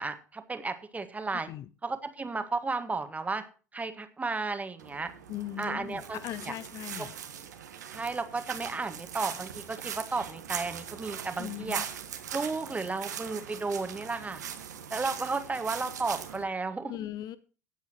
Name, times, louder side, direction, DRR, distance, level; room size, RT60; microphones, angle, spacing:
voice 1, 0.0-1.5 1.8-3.4 3.7-5.1 5.6-6.5 7.0-7.1 7.9-11.8 12.3-14.4 14.9-16.9, right 3 dB, 15° right, 1.7 m, -33 dB
voice 2, 1.3-1.7 5.3-7.1 11.4-11.8 16.9-17.4, left 13 dB, 45° left, 0.7 m, -39 dB
sound 1, 4.8-16.4, right 8 dB, 75° right, 1.4 m, -41 dB
17.5 x 8.1 x 3.0 m
figure-of-eight pair, 70°, 9 cm